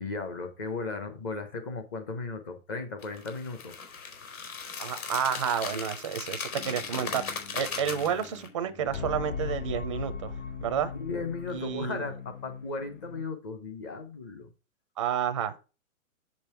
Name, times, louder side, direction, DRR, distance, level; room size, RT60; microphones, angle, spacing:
voice 1, 0.0-3.7 11.0-14.5, left 3 dB, 15° left, 0.6 m, -36 dB
sound 1, 3.0-8.5, left 5 dB, 85° left, 4.6 m, -37 dB
voice 2, 4.8-10.3 10.6-10.9 11.5-12.0 15.0-15.6, right 8 dB, 25° right, 0.5 m, -30 dB
sound 2, 6.6-13.2, left 5 dB, 60° left, 1.5 m, -39 dB
7.5 x 5.4 x 4.4 m
hypercardioid pair, 160°, 41 cm